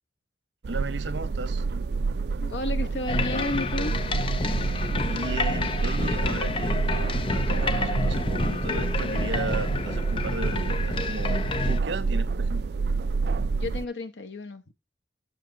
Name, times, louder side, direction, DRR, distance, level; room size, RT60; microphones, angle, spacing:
sound 1, 0.6-13.8, right 4 dB, 65° right, 0.4 m, -28 dB
voice 1, 0.7-1.6 4.6-12.6, right 3 dB, 85° right, 0.9 m, -35 dB
voice 2, 2.4-4.2 13.6-14.7, left 2 dB, 85° left, 1.1 m, -32 dB
sound 2, 3.1-11.8, left 3 dB, 30° left, 0.6 m, -29 dB
7.4 x 6.9 x 3.8 m
head